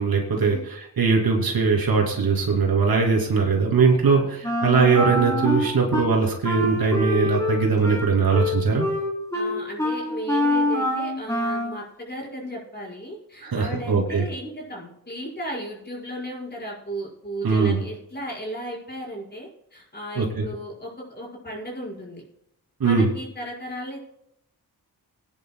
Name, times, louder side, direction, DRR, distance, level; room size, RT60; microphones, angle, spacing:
voice 1, 0.0-8.9 13.4-14.2 17.4-17.8 20.2-20.4 22.8-23.1, right 5 dB, 75° right, 0 dB, 3.0 m, -21 dB
Wind instrument woodwind instrument, 4.4-6.1 6.4-11.8, left 1 dB, 10° left, 3.9 m, -25 dB
voice 2, 9.3-22.2 22.8-24.0, equal, 30° left, -4 dB, 5.3 m, -35 dB
23.0 x 10.5 x 2.3 m, 0.76 s
wide cardioid pair, 100°, 36 cm